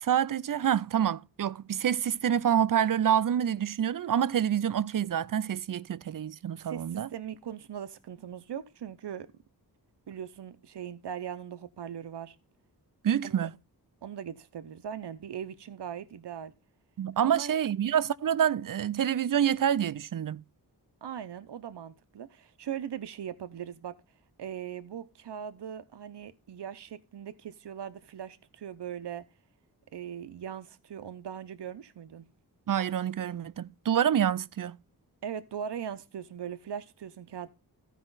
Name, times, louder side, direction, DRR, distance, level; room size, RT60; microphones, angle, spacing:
voice 1, 0.0-7.1 13.0-13.5 17.0-20.4 32.7-34.8, right 9 dB, 55° right, 0.5 m, -27 dB
voice 2, 6.7-9.3 10.1-12.4 13.2-13.5 14.0-16.5 17.2-17.5 21.0-24.0 24.4-29.2 29.9-32.3 35.2-37.5, right 9 dB, 80° right, 0.8 m, -40 dB
15.0 x 5.0 x 3.9 m
wide cardioid pair, 80°, 40 cm